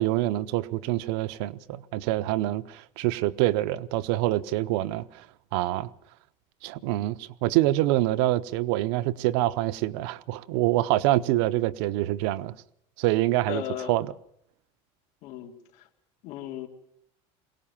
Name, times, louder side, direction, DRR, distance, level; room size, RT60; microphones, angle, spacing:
voice 1, 0.0-5.2 5.5-5.9 6.6-12.6 13.0-14.1, right 16 dB, 75° right, 0.7 m, -26 dB
voice 2, 13.5-13.9 15.2-15.5 16.2-16.7, left 11 dB, 55° left, 2.3 m, -35 dB
22.5 x 18.0 x 7.2 m
cardioid pair, 175°, 14 cm